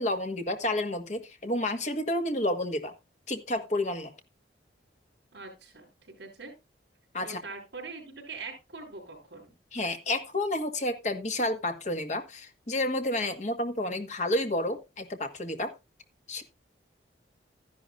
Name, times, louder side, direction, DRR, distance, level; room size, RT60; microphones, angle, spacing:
voice 1, 0.0-2.9 3.3-4.1 7.1-7.4 9.7-15.7 16.3-16.4, left 1 dB, 40° left, 1.6 m, -30 dB
voice 2, 5.3-5.9 6.2-6.5 7.2-9.5, right 4 dB, 70° right, 4.4 m, -42 dB
13.5 x 11.0 x 2.5 m
head